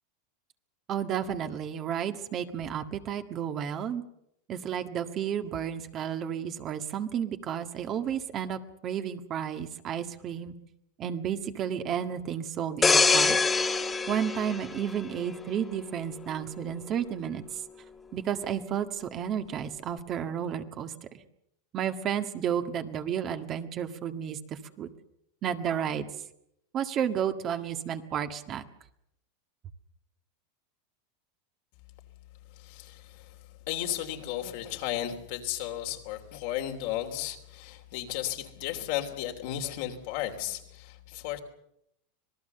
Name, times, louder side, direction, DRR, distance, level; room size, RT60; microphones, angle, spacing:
voice 1, 0.9-4.0 4.5-10.5 11.0-13.4 14.1-17.6 18.1-21.1 21.7-24.9 25.4-26.1 26.7-28.7, right 9 dB, 40° right, 7 dB, 1.7 m, -32 dB
sound 1, 12.8-15.5 16.0-16.2, left 4 dB, 15° left, 1.7 m, -25 dB
voice 2, 32.6-33.4 33.7-41.4, left 12 dB, 65° left, 4 dB, 3.1 m, -34 dB
26.0 x 18.5 x 6.8 m, 0.77 s
supercardioid pair, 115°, 0 cm